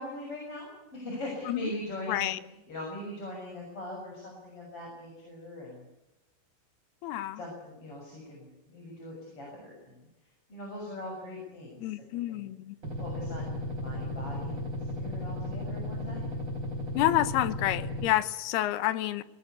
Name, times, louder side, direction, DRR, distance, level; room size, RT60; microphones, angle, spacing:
voice 1, 0.0-2.3 2.7-5.8 7.4-10.1 10.5-12.5 13.0-16.3, left 1 dB, 35° left, -2 dB, 7.4 m, -41 dB
voice 2, 2.1-2.4 7.0-7.4 11.8-12.8 17.0-19.2, left 14 dB, 80° left, 14 dB, 3.0 m, -29 dB
sound 1, 12.8-18.1, left 1 dB, 30° right, 4.7 m, -35 dB
21.0 x 20.0 x 8.3 m, 0.98 s
omnidirectional pair, 4.6 m